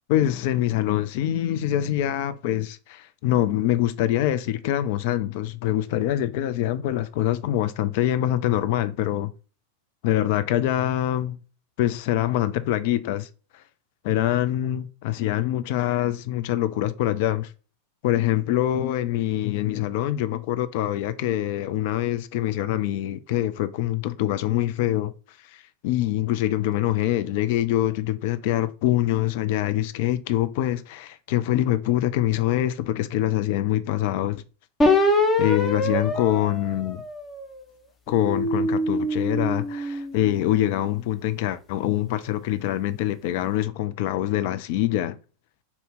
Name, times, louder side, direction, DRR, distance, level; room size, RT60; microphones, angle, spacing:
voice 1, 0.1-9.3 10.0-11.4 11.8-13.3 13.5-13.6 14.0-17.5 18.0-25.1 25.5-34.4 35.4-37.0 38.1-45.2, left 13 dB, 50° left, 0.3 m, -24 dB
sound 1, 34.8-37.5 38.1-40.6, left 1 dB, 20° left, 0.8 m, -24 dB
4.2 x 2.7 x 3.5 m
figure-of-eight pair, 90°, 0 cm